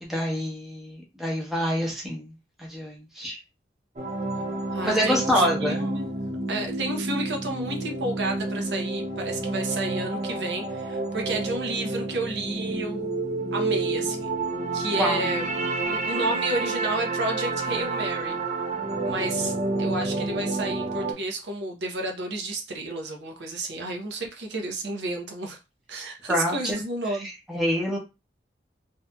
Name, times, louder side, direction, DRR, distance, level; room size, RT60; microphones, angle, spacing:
voice 1, 0.0-2.3 2.6-3.4 4.8-5.8 15.0-15.3 26.3-26.8 27.1-27.2 27.5-28.0, equal, ahead, 0.8 m, -26 dB
sound 1, 4.0-21.1, right 2 dB, 40° right, 0.5 m, -29 dB
voice 2, 4.7-6.1 6.5-13.2 13.5-14.3 14.7-15.5 15.9-18.4 19.0-25.6 25.9-27.3, right 2 dB, 75° right, 0.7 m, -31 dB
2.7 x 2.6 x 2.2 m
head